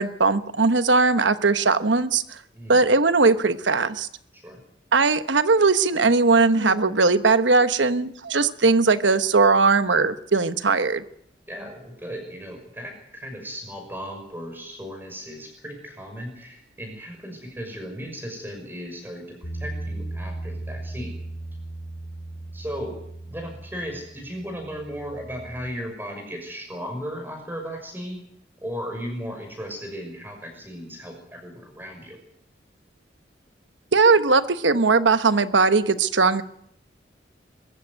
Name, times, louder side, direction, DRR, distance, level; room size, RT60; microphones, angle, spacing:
voice 1, 0.0-2.4 2.7-4.1 4.9-11.0 33.9-36.4, right 4 dB, 90° right, 12 dB, 1.2 m, -19 dB
voice 2, 11.5-21.1 22.5-23.0 23.3-28.2 28.6-32.2, equal, 10° right, 3 dB, 6.0 m, -36 dB
Bass guitar, 19.4-25.7, right 2 dB, 65° left, 3.5 m, -37 dB
23.0 x 14.0 x 9.6 m, 0.71 s
head